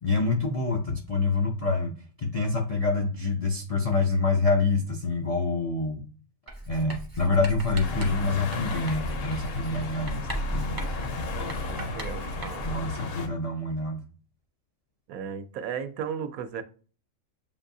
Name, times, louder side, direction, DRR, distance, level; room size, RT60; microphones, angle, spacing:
voice 1, 0.0-6.0 6.7-10.8 12.6-14.0, left 3 dB, 70° left, 0.3 m, -26 dB
Writing, 6.5-12.9, right 1 dB, 25° right, 0.5 m, -36 dB
sound 1, 7.8-13.3, left 4 dB, 55° left, 0.7 m, -34 dB
voice 2, 11.3-12.7 15.1-16.6, right 7 dB, 80° right, 1.0 m, -35 dB
7.1 x 2.6 x 2.6 m
omnidirectional pair, 1.5 m